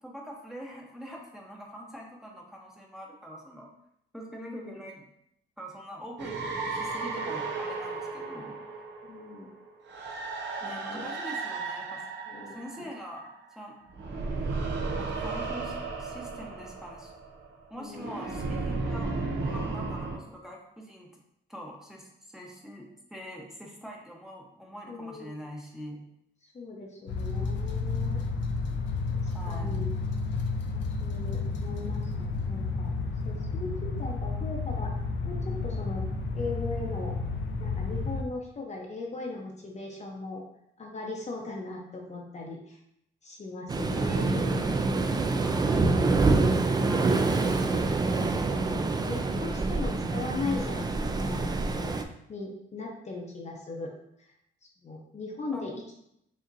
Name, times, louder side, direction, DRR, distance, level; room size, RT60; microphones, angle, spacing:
voice 1, 0.0-3.7 4.1-5.0 5.6-8.9 10.6-12.0 12.5-13.8 14.3-17.1 17.7-19.1 19.4-21.1 21.5-26.0 29.2-29.9 45.3-46.0 46.7-47.6 55.5-55.6, equal, ahead, -2 dB, 0.9 m, -43 dB
voice 2, 4.3-4.8 9.0-9.5 10.6-11.0 12.3-12.9 17.8-18.3 24.9-25.3 26.4-28.2 29.2-29.9 30.7-32.9 33.2-34.9 35.3-36.0 36.3-37.1 37.6-40.4 40.8-42.8 43.2-44.6 48.7-51.9 52.3-53.9 54.2-54.3 54.6-55.7, left 3 dB, 35° left, -1 dB, 0.8 m, -39 dB
sound 1, 6.2-13.5 13.9-20.2, right 3 dB, 65° right, 0.7 m, -34 dB
sound 2, 27.1-38.2, left 4 dB, 70° left, 0.6 m, -31 dB
Waves surf, 43.7-52.0, right 3 dB, 20° right, 0.3 m, -26 dB
5.1 x 2.9 x 2.6 m, 0.76 s
cardioid pair, 90°, 20 cm